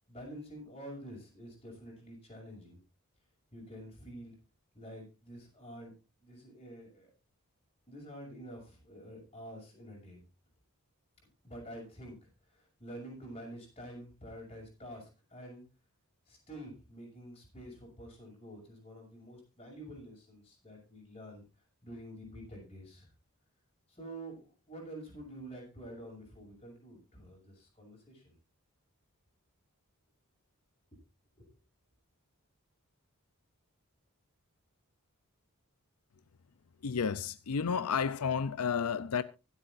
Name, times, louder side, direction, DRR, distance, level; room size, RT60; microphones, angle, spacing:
voice 1, 0.1-2.8 3.5-4.4 4.7-5.9 6.2-7.1 7.9-10.2 11.4-15.6 16.3-21.5 21.8-23.1 23.9-28.3 31.4-31.5, right 1 dB, 25° left, 6.7 m, -48 dB
voice 2, 36.8-39.2, left 6 dB, 85° left, 0.5 m, -31 dB
24.5 x 8.3 x 2.6 m
head